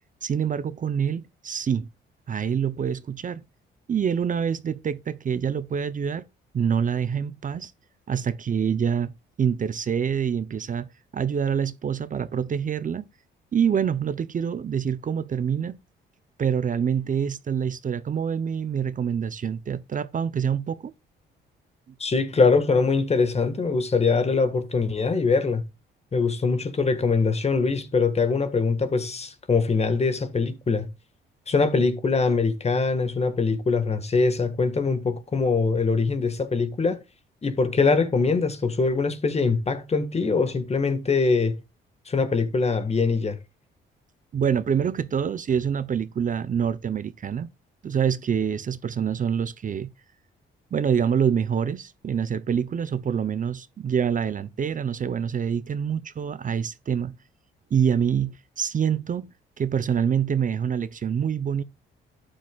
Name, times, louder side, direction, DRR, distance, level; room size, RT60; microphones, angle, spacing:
voice 1, 0.2-1.9 2.3-3.4 3.9-6.2 6.5-7.7 8.1-9.1 9.4-10.9 11.1-13.0 13.5-15.8 16.4-20.9 44.3-47.5 47.8-49.9 50.7-57.1 57.7-59.3 59.6-61.6, right 7 dB, 40° right, 0.8 m, -26 dB
voice 2, 22.0-25.6 26.1-30.9 31.5-37.0 37.4-41.6 42.1-43.4, left 4 dB, 30° left, 1.7 m, -23 dB
12.0 x 9.0 x 2.4 m
cardioid pair, 90°, 20 cm